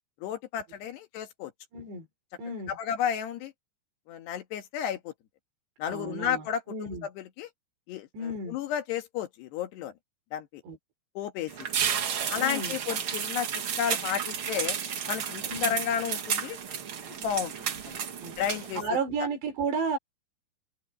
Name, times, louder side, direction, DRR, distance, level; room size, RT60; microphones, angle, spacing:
voice 1, 0.2-1.5 2.7-3.5 4.1-5.1 5.8-7.5 7.9-9.9 10.3-10.6 11.2-11.5 12.3-14.8 15.1-16.6 17.2-17.5 18.4-18.8, left 9 dB, 80° left, 3.8 m, -32 dB
voice 2, 1.7-2.1 2.4-2.8 5.9-7.1 8.1-8.6 10.6-10.8 12.4-12.8 15.4-15.8 18.2-18.3 18.8-20.0, right 3 dB, 85° right, 6.6 m, -33 dB
sound 1, 11.5-18.8, right 7 dB, 65° right, 1.2 m, -32 dB
omnidirectional pair, 4.8 m